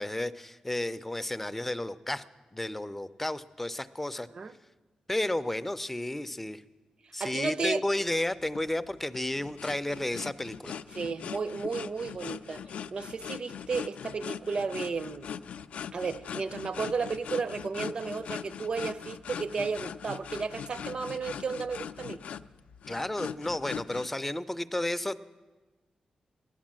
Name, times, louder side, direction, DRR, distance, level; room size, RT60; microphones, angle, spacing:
voice 1, 0.0-2.2 2.5-4.3 5.1-6.6 7.1-10.8 22.9-25.2, left 1 dB, 10° left, 12 dB, 0.4 m, -32 dB
voice 2, 7.0-7.8 10.9-12.6 12.9-15.3 15.9-22.2, right 4 dB, 45° right, 14 dB, 0.5 m, -33 dB
sound 1, 8.4-24.1, left 7 dB, 90° left, 0.4 m, -41 dB
16.5 x 11.5 x 7.4 m, 1.3 s
wide cardioid pair, 155°, 2 cm